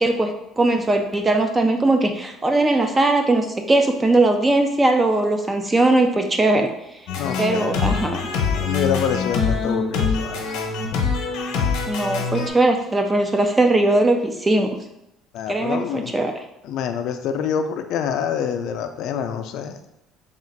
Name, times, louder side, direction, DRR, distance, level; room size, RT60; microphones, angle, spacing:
voice 1, 0.0-6.7 7.4-8.2 11.9-14.7 15.5-16.3, right 2 dB, 15° right, 4 dB, 0.3 m, -19 dB
sound 1, 7.1-12.5, left 5 dB, 80° left, 0.8 m, -24 dB
voice 2, 7.2-7.7 8.5-10.5 15.3-16.1 16.6-19.8, left 7 dB, 60° left, 7 dB, 0.4 m, -26 dB
3.5 x 2.4 x 4.5 m, 0.87 s
cardioid pair, 165°, 0 cm